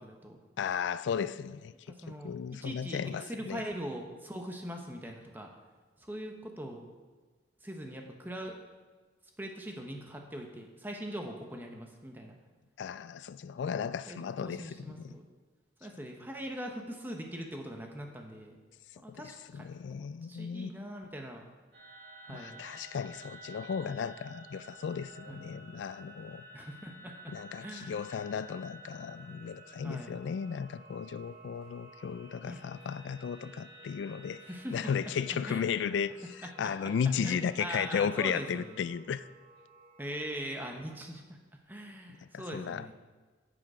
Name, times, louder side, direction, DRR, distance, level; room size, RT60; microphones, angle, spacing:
voice 1, 0.0-0.4 1.9-2.3 2.6-3.0 3.3-5.5 6.0-6.9 7.6-8.6 9.4-12.4 14.1-15.2 15.8-18.6 19.0-19.7 20.0-21.4 22.2-22.6 25.3-25.4 26.5-27.1 27.6-28.1 29.8-30.1 32.4-32.6 34.5-34.7 35.5-36.0 36.4-36.7 37.2-38.8 40.0-41.4 41.7-42.9, equal, 10° right, 2 dB, 1.0 m, -41 dB
voice 2, 0.6-1.7 2.1-3.6 12.8-15.1 19.1-20.7 22.3-26.4 27.3-34.4 34.7-36.1 36.4-39.3 42.3-42.9, left 7 dB, 80° left, 15 dB, 0.3 m, -35 dB
sound 1, 21.7-40.3, right 2 dB, 55° right, 2.1 m, -53 dB
10.5 x 7.9 x 5.0 m, 1.4 s
head